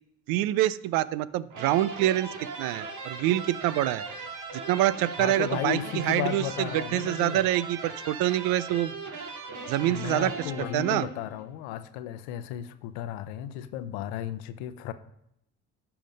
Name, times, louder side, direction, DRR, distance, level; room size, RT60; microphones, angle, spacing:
voice 1, 0.3-2.3 2.6-4.0 4.5-8.9 9.7-11.1, right 14 dB, 80° right, 17 dB, 0.5 m, -26 dB
sound 1, 1.5-11.5, right 3 dB, 60° right, 2.0 m, -39 dB
voice 2, 5.2-7.4 9.8-14.9, left 11 dB, 85° left, 11 dB, 0.7 m, -34 dB
11.5 x 5.9 x 5.2 m, 0.77 s
supercardioid pair, 70°, 34 cm